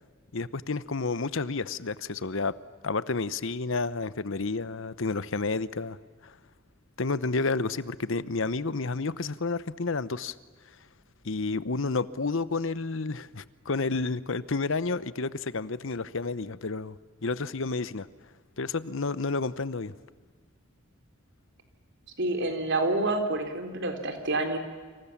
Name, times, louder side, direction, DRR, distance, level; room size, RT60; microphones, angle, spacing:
voice 1, 0.3-2.5 2.8-6.0 6.2-6.3 7.0-10.3 11.2-17.0 17.2-18.1 18.6-19.9, left 3 dB, 65° left, 16 dB, 0.9 m, -30 dB
voice 2, 22.2-24.6, right 2 dB, 55° right, 6 dB, 3.9 m, -28 dB
29.0 x 26.5 x 7.3 m, 1.5 s
head